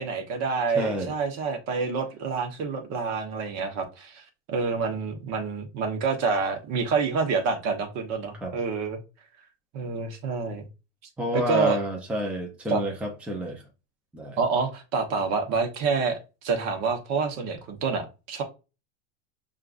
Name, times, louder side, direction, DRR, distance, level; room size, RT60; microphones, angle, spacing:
voice 1, 0.0-9.0 9.7-10.7 11.3-11.8 12.7-12.8 14.4-18.4, right 4 dB, 45° right, 1.2 m, -28 dB
voice 2, 0.7-1.1 8.4-8.5 11.2-13.6 14.1-14.4, equal, 5° right, 0.7 m, -29 dB
6.4 x 2.5 x 2.5 m
supercardioid pair, 130°, 37 cm